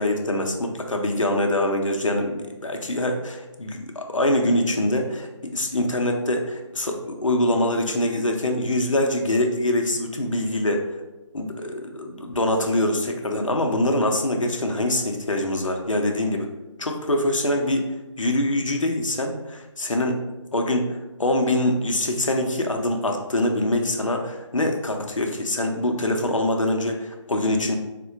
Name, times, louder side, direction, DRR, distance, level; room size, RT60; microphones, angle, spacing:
voice 1, 0.0-11.0 11.3-16.5 16.8-17.9 18.2-20.2 20.5-27.8, left 1 dB, 80° left, 3 dB, 0.6 m, -24 dB
4.1 x 2.2 x 2.6 m, 1.1 s
figure-of-eight pair, 150°, 16 cm